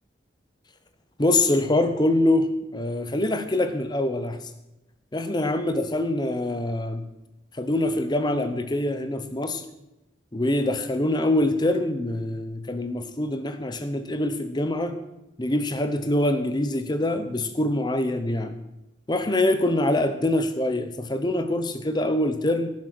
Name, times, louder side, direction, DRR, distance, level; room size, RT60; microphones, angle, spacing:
voice 1, 1.2-4.4 5.1-7.0 7.5-9.6 10.3-15.0 15.4-18.5 19.1-22.7, left 1 dB, 25° left, 9 dB, 0.8 m, -24 dB
16.5 x 7.4 x 6.1 m, 0.93 s
head